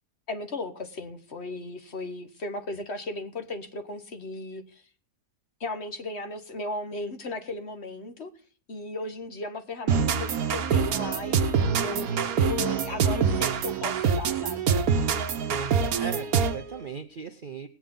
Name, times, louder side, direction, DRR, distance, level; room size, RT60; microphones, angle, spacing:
voice 1, 0.3-4.9 5.6-8.3 8.7-14.7, left 2 dB, 45° left, 8 dB, 1.4 m, -36 dB
sound 1, 9.9-16.7, right 6 dB, 70° right, 1.3 m, -25 dB
voice 2, 15.5-17.7, right 6 dB, 50° right, 9 dB, 0.6 m, -38 dB
20.0 x 8.3 x 3.8 m, 0.41 s
omnidirectional pair, 1.7 m